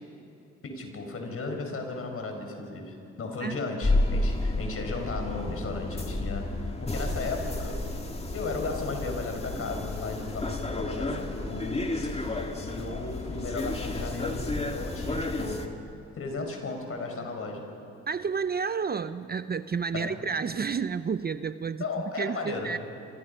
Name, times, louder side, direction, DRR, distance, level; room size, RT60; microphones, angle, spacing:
voice 1, 0.6-7.8 8.3-15.6 16.1-17.7 19.9-20.2 21.8-22.8, left 3 dB, 50° left, 3 dB, 5.8 m, -35 dB
sound 1, 3.8-15.7, left 2 dB, 20° left, 2.2 m, -31 dB
voice 2, 18.1-21.8 22.2-22.8, right 5 dB, 30° right, 12 dB, 0.7 m, -30 dB
27.5 x 26.5 x 5.6 m, 2.7 s
cardioid pair, 90°, 30 cm